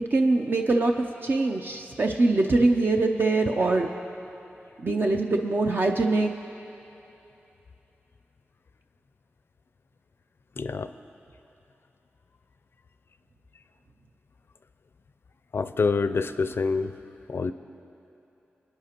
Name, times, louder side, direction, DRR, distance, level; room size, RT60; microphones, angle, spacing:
voice 1, 0.1-3.9 4.8-6.3, right 2 dB, 50° right, 2 dB, 0.5 m, -23 dB
voice 2, 10.6-10.9 15.5-17.0 17.3-17.5, left 4 dB, 65° left, 11 dB, 0.4 m, -26 dB
27.0 x 9.7 x 2.9 m, 3.0 s
wide cardioid pair, 70°, 4 cm